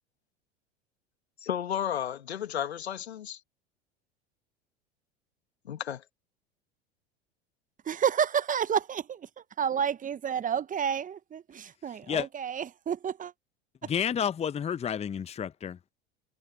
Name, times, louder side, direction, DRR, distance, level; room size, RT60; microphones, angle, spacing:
voice 1, 1.4-3.4 5.6-6.0, left 9 dB, 80° left, 2.1 m, -33 dB
voice 2, 7.8-13.3 13.8-13.9, right 8 dB, 25° right, 1.0 m, -30 dB
voice 3, 13.8-15.9, left 8 dB, 20° left, 0.8 m, -30 dB
hypercardioid pair, 85°, 32 cm